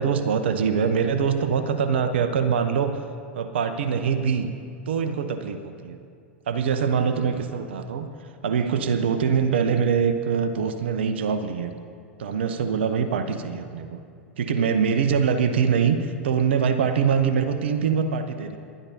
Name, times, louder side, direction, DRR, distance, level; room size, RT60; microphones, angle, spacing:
voice 1, 0.0-2.9 3.3-4.5 4.9-6.0 6.5-8.1 8.4-11.7 12.2-14.0 14.4-18.6, right 6 dB, 65° right, 9 dB, 0.8 m, -23 dB
28.5 x 12.5 x 2.8 m, 2.3 s
figure-of-eight pair, 90°, 6 cm